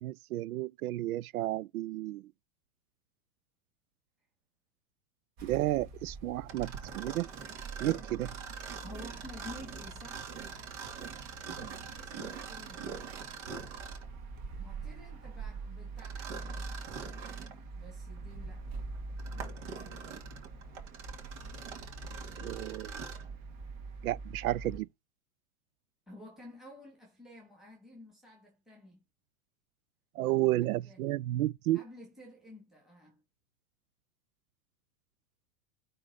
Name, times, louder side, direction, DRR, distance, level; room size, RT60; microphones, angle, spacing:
voice 1, 0.0-2.2 5.4-7.3 7.8-8.3 22.4-22.9 24.0-24.9 30.2-31.8, right 16 dB, 85° right, 0.5 m, -32 dB
sound 1, 5.4-24.8, right 3 dB, 40° right, 2.5 m, -45 dB
Mechanisms, 6.5-14.1 16.0-17.6 18.2-18.3 18.9-23.3, right 6 dB, 55° right, 2.7 m, -44 dB
voice 2, 8.8-10.3 11.6-12.9 14.6-17.1 17.7-18.8 26.1-29.0 30.2-31.1 31.7-33.2, left 1 dB, ahead, 2.7 m, -52 dB
9.7 x 4.0 x 4.2 m
supercardioid pair, 140°, 42 cm